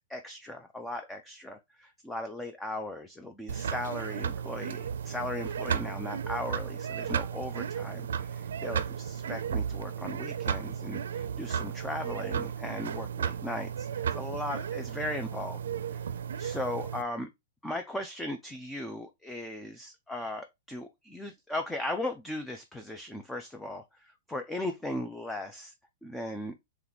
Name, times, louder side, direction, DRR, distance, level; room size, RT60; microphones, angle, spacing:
voice 1, 0.1-15.6 15.9-16.0 16.4-17.3 17.6-25.7 26.0-26.5, left 1 dB, 5° left, 0.4 m, -37 dB
sound 1, 3.5-17.0, right 7 dB, 90° right, 0.4 m, -34 dB
3.4 x 3.0 x 3.9 m
hypercardioid pair, 160°, 0 cm